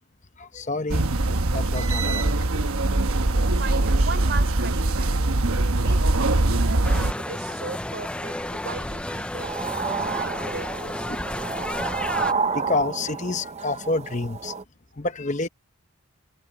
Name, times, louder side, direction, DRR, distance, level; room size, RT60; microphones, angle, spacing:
voice 1, 0.4-2.9 3.1-3.9 4.9-5.3 6.0-6.1 7.5-7.6 8.1-8.7 11.4-14.5 14.9-15.5, left 2 dB, 35° left, 0.9 m, -31 dB
sound 1, 0.9-7.1, right 2 dB, 75° right, 1.1 m, -22 dB
voice 2, 3.1-5.4 5.8-9.6 9.8-11.4, right 4 dB, 50° right, 4.2 m, -38 dB
sound 2, 6.8-12.3, left 1 dB, 5° left, 0.5 m, -31 dB
sound 3, 9.4-14.6, right 5 dB, 30° right, 0.7 m, -30 dB
head